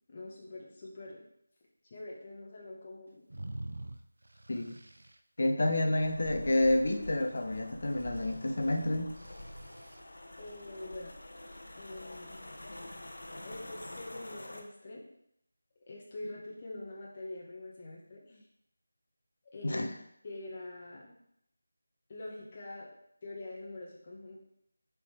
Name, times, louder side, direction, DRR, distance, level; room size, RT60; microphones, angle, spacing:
voice 1, 0.1-1.2 1.9-3.2 10.4-11.2 11.7-12.4 13.4-15.1 15.9-18.4 19.5-19.9 20.2-21.2 22.1-22.9 23.2-24.4, left 2 dB, 30° left, -4 dB, 1.5 m, -44 dB
sound 1, 3.3-5.2 8.0-10.0, right 1 dB, 80° right, 0.6 m, -46 dB
voice 2, 5.4-9.1 19.6-20.0, left 1 dB, 60° left, 5 dB, 1.0 m, -29 dB
sound 2, 6.0-14.6, left 1 dB, 75° left, 1.2 m, -47 dB
5.2 x 4.7 x 5.0 m, 0.74 s
figure-of-eight pair, 170°, 0 cm